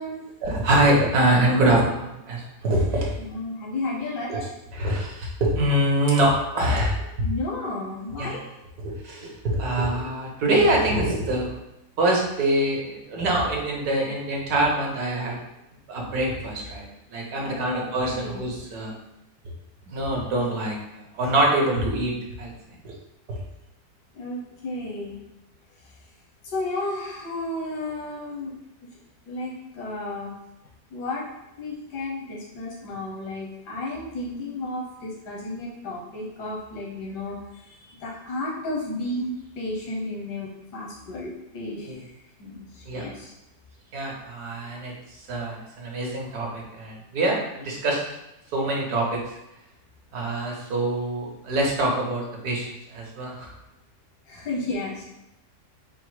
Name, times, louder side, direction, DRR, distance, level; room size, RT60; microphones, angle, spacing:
voice 1, 0.4-3.1 4.3-4.4 4.7-7.0 8.2-8.3 8.8-11.5 12.0-15.4 15.9-16.9 17.1-18.9 19.9-20.7 21.1-22.1 22.4-22.9 23.3-23.4 26.8-26.9 41.9-42.0 42.9-43.1 43.9-44.9 45.3-48.1 48.5-49.2 50.1-53.5, right 1 dB, 70° right, -2 dB, 1.5 m, -24 dB
voice 2, 3.2-4.5 7.2-8.5 17.4-18.4 24.1-25.2 26.4-28.5 29.3-30.3 30.9-31.3 31.6-42.1 42.4-43.3 54.3-55.0, left 2 dB, 90° left, -3 dB, 1.5 m, -33 dB
4.5 x 2.1 x 4.6 m, 0.91 s
omnidirectional pair, 1.8 m